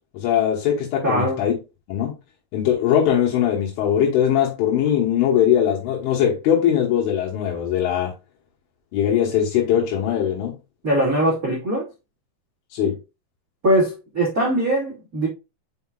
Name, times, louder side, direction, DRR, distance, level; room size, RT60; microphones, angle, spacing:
voice 1, 0.1-1.5 1.9-2.1 2.5-8.1 8.9-10.5 12.7-13.0, left 9 dB, 75° left, 3.6 m, -20 dB
voice 2, 1.0-1.4 10.8-11.9 13.6-15.3, right 1 dB, 70° right, 0.8 m, -21 dB
6.9 x 5.7 x 2.4 m
omnidirectional pair, 5.8 m